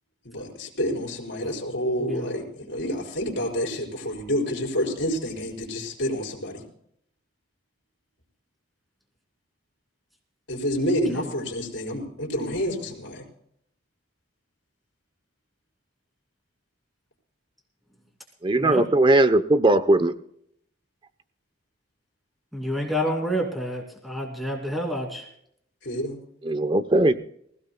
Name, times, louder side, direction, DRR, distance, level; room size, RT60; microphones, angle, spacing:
voice 1, 0.2-6.6 10.5-13.2 25.8-26.2, equal, 65° left, -4 dB, 4.3 m, -28 dB
voice 2, 18.4-20.1 26.4-27.2, right 2 dB, 25° right, 12 dB, 0.7 m, -19 dB
voice 3, 22.5-25.3, equal, ahead, 2 dB, 2.5 m, -28 dB
24.0 x 16.5 x 2.2 m, 0.69 s
head